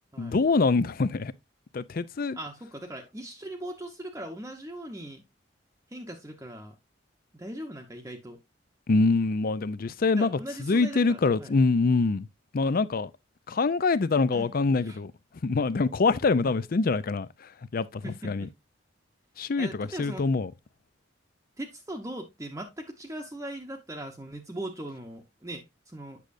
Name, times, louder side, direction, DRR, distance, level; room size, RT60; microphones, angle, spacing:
voice 1, 0.2-1.3 1.7-2.4 8.9-12.3 12.5-13.1 13.5-15.1 15.4-18.5 19.4-20.5, left 3 dB, 50° left, 0.5 m, -25 dB
voice 2, 2.3-5.2 5.9-6.7 7.3-8.4 10.2-11.5 14.3-14.5 14.9-15.0 16.4-16.6 18.0-18.5 19.6-20.2 21.6-25.7 25.9-26.2, right 1 dB, 15° right, 0.8 m, -39 dB
8.5 x 6.2 x 2.5 m
head